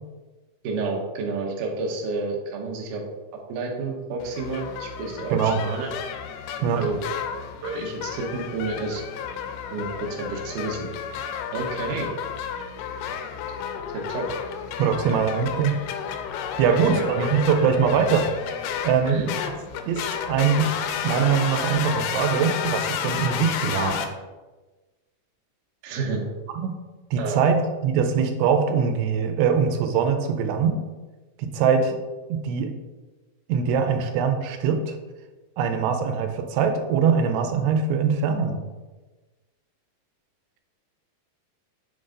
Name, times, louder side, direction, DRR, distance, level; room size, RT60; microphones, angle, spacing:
voice 1, 0.6-3.0 3.5-5.9 6.7-7.0 7.6-9.0 9.7-10.9 11.5-12.1 13.9-14.3 16.7-17.4 19.1-19.3 25.8-26.2 27.2-27.4, right 3 dB, 70° right, 0 dB, 2.0 m, -30 dB
sound 1, 4.2-24.1, left 8 dB, 85° left, 2.6 m, -32 dB
voice 2, 14.8-15.7 16.6-18.3 18.8-19.2 19.9-20.7 21.0-24.0 26.6-26.8 27.1-30.8 31.4-32.0 32.3-32.7 33.5-35.0 35.6-38.6, right 6 dB, 85° right, 6 dB, 2.7 m, -22 dB
7.0 x 3.9 x 3.7 m, 1.2 s
omnidirectional pair, 4.7 m